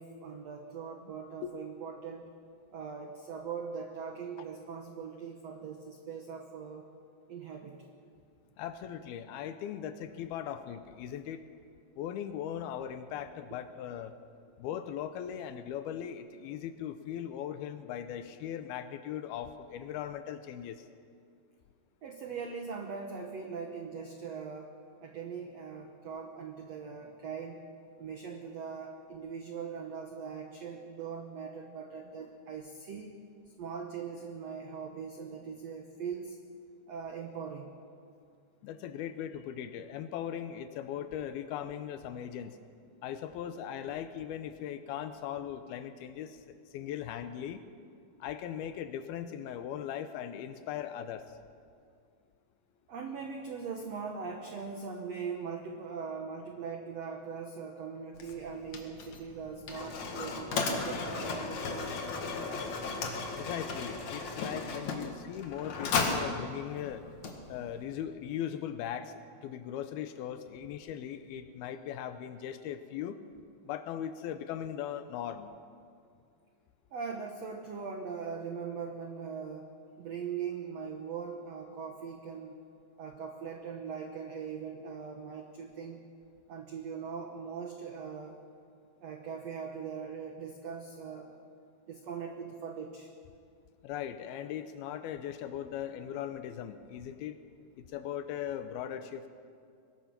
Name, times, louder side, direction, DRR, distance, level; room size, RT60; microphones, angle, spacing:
voice 1, 0.0-2.3 2.7-6.9 7.3-7.9 13.5-13.6 22.0-24.7 25.0-27.6 28.0-33.2 33.6-36.4 36.9-37.7 43.9-44.0 52.9-62.4 76.9-82.6 83.0-86.0 86.5-88.4 89.0-91.4 91.9-93.1, right 6 dB, 85° right, 4 dB, 1.4 m, -41 dB
voice 2, 8.6-11.4 12.0-14.2 14.6-20.9 38.6-42.6 43.0-47.6 48.2-51.4 63.3-67.1 67.5-69.1 69.4-73.2 73.7-75.5 93.8-97.4 97.9-99.3, left 10 dB, 75° left, 10 dB, 2.5 m, -39 dB
Mechanisms, 58.1-67.8, left 4 dB, 50° left, 2.7 m, -36 dB
23.0 x 19.5 x 5.9 m, 2.3 s
omnidirectional pair, 4.8 m